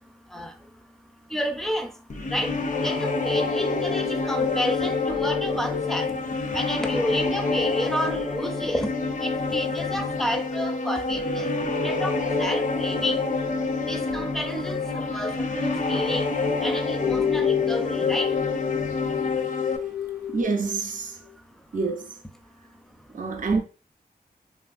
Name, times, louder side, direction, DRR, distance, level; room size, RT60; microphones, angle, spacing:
voice 1, 1.3-1.9 2.3-2.5 2.8-6.1 6.5-8.9 9.2-11.5 11.8-13.2 13.9-14.8 15.1-16.3 16.6-18.3, equal, ahead, 0.5 m, -30 dB
sound 1, 2.1-19.8, left 3 dB, 50° left, 0.5 m, -27 dB
sound 2, 3.6-6.8 10.3-12.9 17.0-20.8, left 7 dB, 90° left, 0.7 m, -30 dB
voice 2, 20.3-21.2 21.7-22.2 23.1-23.6, right 4 dB, 55° right, 0.5 m, -27 dB
3.1 x 2.5 x 2.4 m
cardioid pair, 55°, 16 cm